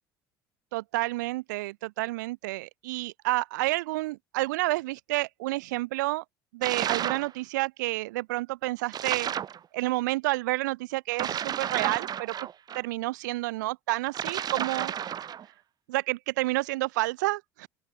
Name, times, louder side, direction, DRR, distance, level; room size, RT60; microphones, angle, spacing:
voice 1, 0.7-6.2 6.5-9.3 9.7-12.3 12.7-14.9 15.9-17.7, right 20 dB, 70° right, 7.1 m, -29 dB
sound 1, 6.6-7.3 8.9-9.6 11.1-12.8 14.1-15.4, right 9 dB, 40° right, 4.3 m, -32 dB
open air
figure-of-eight pair, 65°, 10 cm